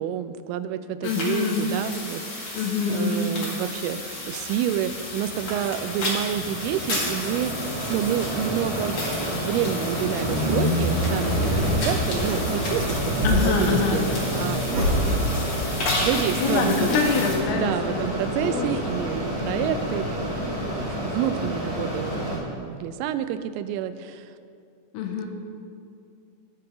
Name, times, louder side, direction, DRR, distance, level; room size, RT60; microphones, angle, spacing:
voice 1, 0.0-2.6 2.9-7.5 7.9-15.4 16.0-17.0 17.5-24.3, right 10 dB, 85° right, 11 dB, 3.0 m, -29 dB
voice 2, 1.0-1.7 2.5-3.3 13.2-14.0 16.4-18.0 18.4-18.7 19.4-19.7 24.9-25.3, left 5 dB, 85° left, 2 dB, 3.6 m, -25 dB
sound 1, 1.0-17.4, left 2 dB, 65° left, 1.4 m, -33 dB
Mechanisms, 4.4-22.4, equal, 10° left, 1.2 m, -31 dB
sound 2, 10.0-21.2, equal, 50° right, 4.2 m, -28 dB
19.5 x 7.0 x 3.4 m, 2.4 s
omnidirectional pair, 5.9 m